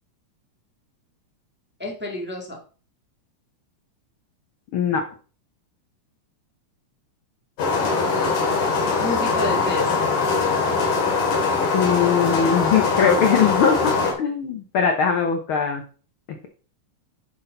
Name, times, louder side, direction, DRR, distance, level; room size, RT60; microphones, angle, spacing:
voice 1, 1.8-2.6 7.8-8.1 9.0-9.9, left 1 dB, 5° right, 0 dB, 1.6 m, -30 dB
voice 2, 4.7-5.0 11.7-15.8, left 7 dB, 65° left, 5 dB, 1.4 m, -21 dB
sound 1, 7.6-14.1, left 4 dB, 85° left, 3.8 m, -22 dB
10.0 x 6.3 x 3.9 m, 0.38 s
omnidirectional pair, 3.5 m